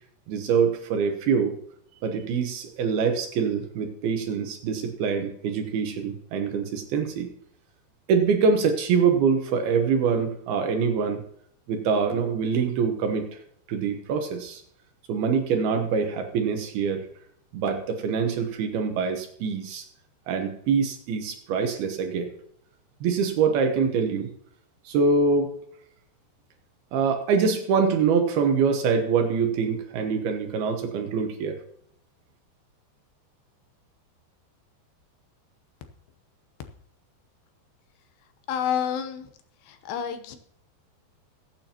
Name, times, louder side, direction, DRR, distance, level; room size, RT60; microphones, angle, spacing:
voice 1, 0.3-1.5 2.0-7.3 8.1-11.2 11.7-13.3 13.7-14.6 15.1-17.1 17.5-19.8 20.3-22.3 23.0-24.3 24.9-25.5 26.9-31.6, right 5 dB, 70° right, 5 dB, 2.7 m, -24 dB
voice 2, 38.5-39.3 39.6-40.4, left 8 dB, 75° left, 8 dB, 2.9 m, -29 dB
21.5 x 9.0 x 2.9 m, 0.66 s
omnidirectional pair, 5.1 m